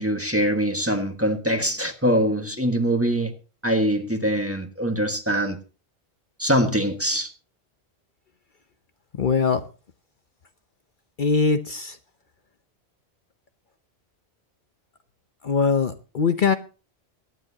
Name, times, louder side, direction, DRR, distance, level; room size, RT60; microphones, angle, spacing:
voice 1, 0.0-3.3 3.6-5.6 6.4-7.3, equal, 15° right, 1.5 m, -23 dB
voice 2, 9.1-9.6 11.2-12.0 15.4-16.5, left 5 dB, 55° left, 0.9 m, -22 dB
23.0 x 10.5 x 2.8 m
omnidirectional pair, 1.1 m